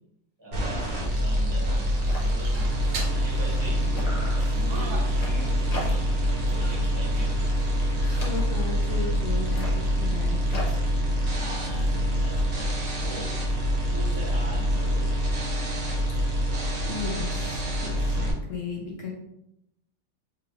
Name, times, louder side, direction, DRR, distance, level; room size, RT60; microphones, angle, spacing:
voice 1, 0.4-1.8 2.2-2.8 3.1-4.2 4.5-6.2 6.5-7.4 11.3-15.3, equal, 20° right, -4 dB, 0.9 m, -41 dB
sound 1, 0.5-18.3, equal, 50° right, 1.2 m, -26 dB
sound 2, 0.8-1.0 1.4-1.5 1.7-3.7 3.9-6.3 6.6-7.0 7.3-8.8 9.4-12.4, left 1 dB, 80° left, 0.3 m, -41 dB
sound 3, 1.7-8.4, right 3 dB, 75° right, 1.4 m, -41 dB
voice 2, 8.0-10.6 16.8-19.1, left 5 dB, 65° left, -1 dB, 0.7 m, -35 dB
5.0 x 2.4 x 3.1 m, 0.81 s
omnidirectional pair, 2.1 m